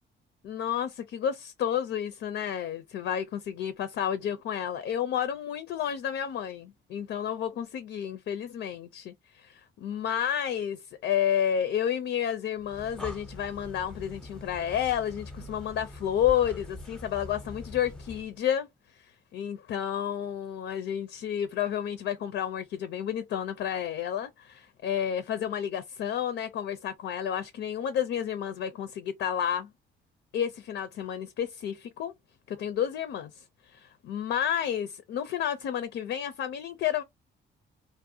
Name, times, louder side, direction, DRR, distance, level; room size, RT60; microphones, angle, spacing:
voice 1, 0.4-18.7 18.9-29.7 30.3-32.1 32.5-37.0, left 9 dB, 70° left, 0.4 m, -31 dB
Breathing, 12.6-18.4, left 1 dB, 5° left, 0.6 m, -43 dB
2.5 x 2.1 x 2.6 m
cardioid pair, 90°, 20 cm